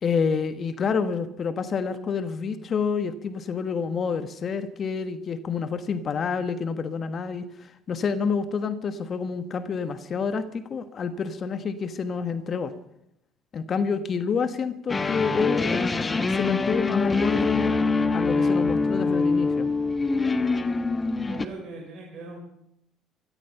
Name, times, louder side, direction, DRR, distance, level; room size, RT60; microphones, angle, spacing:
voice 1, 0.0-12.7 13.5-15.8 16.3-17.7 18.1-19.7, left 5 dB, 45° left, 11 dB, 1.2 m, -28 dB
sound 1, 14.9-21.5, left 3 dB, 25° left, 1.3 m, -24 dB
voice 2, 21.2-22.4, right 3 dB, 50° right, -1 dB, 4.5 m, -40 dB
16.5 x 14.0 x 5.7 m, 0.78 s
hypercardioid pair, 65°, 0 cm